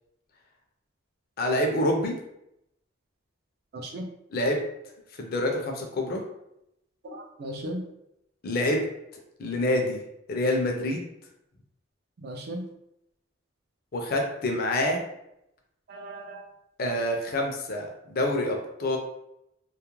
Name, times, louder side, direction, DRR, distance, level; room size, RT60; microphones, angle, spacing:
voice 1, 1.4-2.1 4.3-4.6 5.2-6.2 8.4-8.8 9.4-10.0 10.3-11.0 13.9-15.0 16.8-19.0, left 1 dB, 50° left, 2 dB, 0.5 m, -26 dB
voice 2, 3.7-4.1 7.0-7.8 12.2-12.7 15.9-16.4, right 1 dB, 50° right, 3 dB, 0.4 m, -36 dB
2.3 x 2.1 x 3.0 m, 0.82 s
head